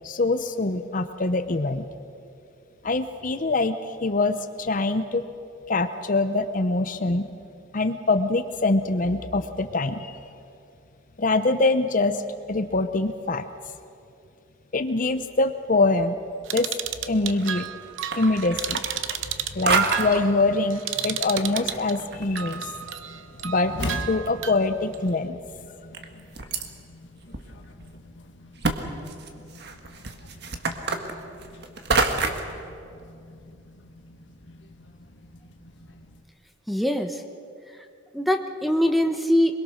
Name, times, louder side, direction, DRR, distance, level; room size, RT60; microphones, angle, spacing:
voice 1, 0.0-1.9 2.8-5.2 5.7-7.3 7.7-10.2 11.2-12.2 12.5-13.4 14.7-16.2 16.5-16.7 17.1-17.7 18.1-18.9 19.5-22.7 23.4-23.8 24.1-25.4, left 2 dB, 45° left, 10 dB, 0.7 m, -24 dB
sound 1, 16.5-21.9 22.4-25.0, right 10 dB, 75° right, 0.9 m, -32 dB
sound 2, 17.3-17.7 18.0-19.4 19.7-20.2 21.0-22.6 22.8-22.9 23.5-23.6 23.8-24.6 25.2-25.3 25.9-26.7 27.3-27.4 27.8-27.9 28.6-28.8 29.1-32.5, right 4 dB, 55° right, 1.6 m, -27 dB
sound 3, 21.4-36.2, left 1 dB, 65° left, 1.4 m, -42 dB
voice 2, 36.7-37.2 38.1-39.5, equal, ahead, 6 dB, 1.1 m, -22 dB
24.0 x 22.0 x 6.5 m, 2.5 s
head